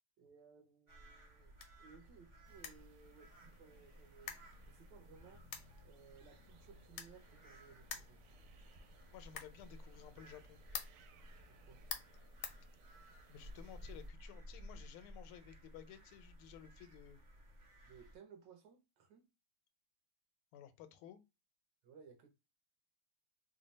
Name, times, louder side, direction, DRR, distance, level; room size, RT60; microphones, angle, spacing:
voice 1, 0.2-4.4 4.7-5.4 5.8-8.4 11.5-11.8 17.9-19.3 21.8-22.3, right 6 dB, 70° right, 1.2 m, -61 dB
sound 1, 0.9-18.2, equal, 50° right, 0.5 m, -57 dB
sound 2, 1.0-13.3, left 8 dB, 70° left, 1.1 m, -52 dB
sound 3, 2.4-14.1, right 8 dB, 90° right, 1.5 m, -69 dB
voice 2, 9.1-10.6 13.3-17.2 20.5-21.2, left 10 dB, 90° left, 1.5 m, -55 dB
3.4 x 2.1 x 3.9 m
omnidirectional pair, 2.3 m